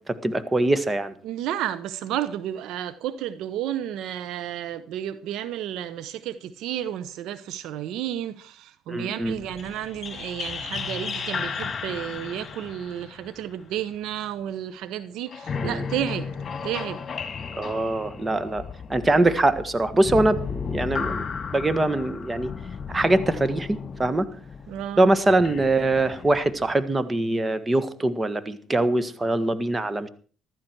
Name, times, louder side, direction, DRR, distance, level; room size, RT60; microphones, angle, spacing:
voice 1, 0.1-1.1 8.9-9.3 15.6-15.8 17.6-21.2 21.5-22.5 22.9-24.3 25.0-30.1, right 2 dB, 20° right, 1.6 m, -23 dB
voice 2, 1.2-16.3 16.6-17.0 24.7-25.1, right 11 dB, 75° right, 0.9 m, -32 dB
sound 1, 9.2-14.3 15.3-26.8, left 6 dB, 45° left, 2.4 m, -34 dB
15.0 x 13.5 x 4.7 m
supercardioid pair, 75°, 0 cm